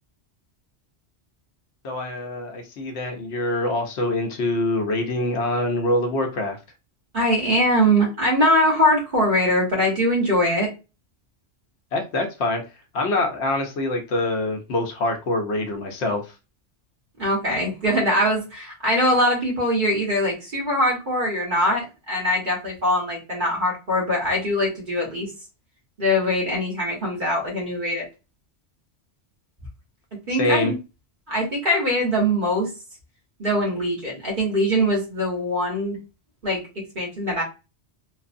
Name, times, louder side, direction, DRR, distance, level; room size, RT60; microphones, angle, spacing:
voice 1, 1.8-6.6 11.9-12.6 12.9-16.2 30.3-30.7, left 2 dB, 75° left, 4 dB, 0.9 m, -25 dB
voice 2, 7.1-10.7 17.2-25.3 26.0-28.0 30.3-30.8 31.3-32.7 33.4-36.0 36.4-36.6 36.9-37.4, equal, 45° right, -2 dB, 1.2 m, -22 dB
3.1 x 2.0 x 2.4 m, 0.29 s
omnidirectional pair, 1.2 m